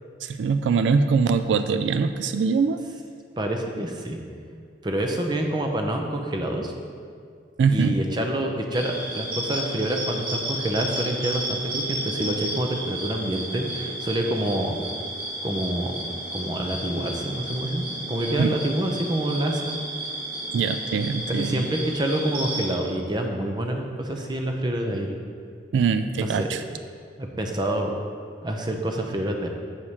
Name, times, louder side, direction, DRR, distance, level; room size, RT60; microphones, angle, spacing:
voice 1, 0.2-2.8 7.6-8.0 18.4-18.5 20.5-21.6 25.7-26.6, right 5 dB, 80° right, 9 dB, 0.3 m, -22 dB
voice 2, 3.4-4.2 4.5-6.7 7.7-14.8 15.4-16.0 16.3-19.8 21.3-25.2 26.2-26.6 27.2-28.0 28.4-29.5, right 1 dB, 25° right, 3 dB, 0.6 m, -27 dB
sound 1, 8.7-22.8, right 1 dB, 55° right, 1.7 m, -32 dB
7.2 x 4.8 x 5.5 m, 2.2 s
head